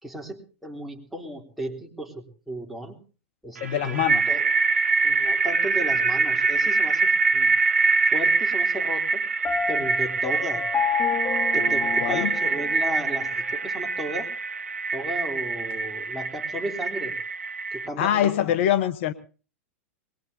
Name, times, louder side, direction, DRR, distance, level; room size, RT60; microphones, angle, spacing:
voice 1, 0.0-3.0 3.4-4.5 5.0-7.6 8.1-9.2 9.7-10.6 11.5-14.3 14.9-17.2 17.7-18.5, right 1 dB, ahead, -1 dB, 3.4 m, -35 dB
voice 2, 3.6-4.2 12.0-12.3 18.0-19.1, left 11 dB, 60° left, 12 dB, 1.0 m, -23 dB
sound 1, 3.6-17.9, right 4 dB, 85° right, 0.9 m, -24 dB
Piano, 9.4-13.3, left 7 dB, 25° left, 1.3 m, -29 dB
22.0 x 20.5 x 2.8 m, 0.37 s
hypercardioid pair, 100°, 7 cm